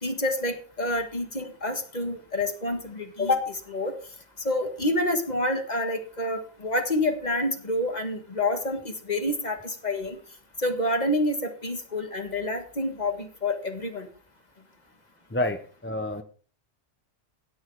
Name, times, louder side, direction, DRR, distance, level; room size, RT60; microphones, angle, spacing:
voice 1, 0.0-3.9 4.4-10.2 10.6-14.1, left 1 dB, 35° left, 5 dB, 1.8 m, -28 dB
voice 2, 15.3-16.2, left 1 dB, 10° left, 8 dB, 0.8 m, -29 dB
16.5 x 6.4 x 4.8 m, 0.41 s
omnidirectional pair, 1.2 m